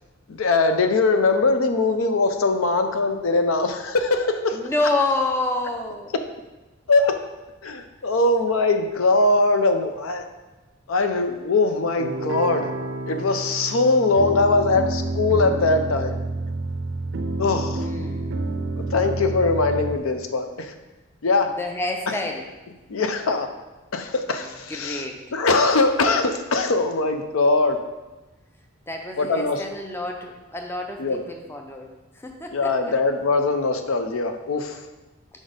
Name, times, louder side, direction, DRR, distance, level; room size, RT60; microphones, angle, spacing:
voice 1, 0.3-4.6 6.9-7.1 7.6-10.2 10.9-12.7 13.1-16.1 17.4-17.9 18.9-20.7 21.2-21.5 22.1-22.2 22.9-23.5 23.9-27.8 29.2-29.6 31.0-31.2 32.5-34.8, left 3 dB, 80° left, 6 dB, 0.5 m, -21 dB
voice 2, 4.5-6.1 17.8-18.4 21.6-22.4 24.7-25.2 28.9-32.9, left 2 dB, 10° left, 3 dB, 0.4 m, -28 dB
sound 1, 12.0-20.0, right 2 dB, 65° right, 0.4 m, -29 dB
5.0 x 4.1 x 5.0 m, 1.1 s
head